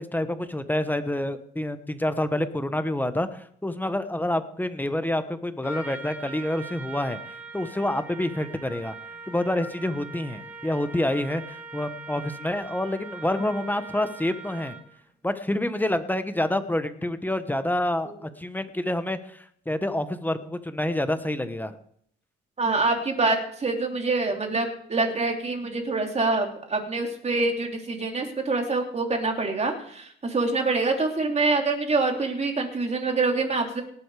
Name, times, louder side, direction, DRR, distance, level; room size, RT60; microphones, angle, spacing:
voice 1, 0.0-7.2 7.5-8.9 9.3-14.8 15.2-21.8, left 1 dB, 10° left, 10 dB, 1.2 m, -28 dB
Trumpet, 5.6-15.0, right 3 dB, 10° right, 2.6 m, -41 dB
voice 2, 22.6-33.8, right 3 dB, 35° right, 3 dB, 3.2 m, -25 dB
19.0 x 7.9 x 4.9 m, 0.64 s
cardioid pair, 90°, 20 cm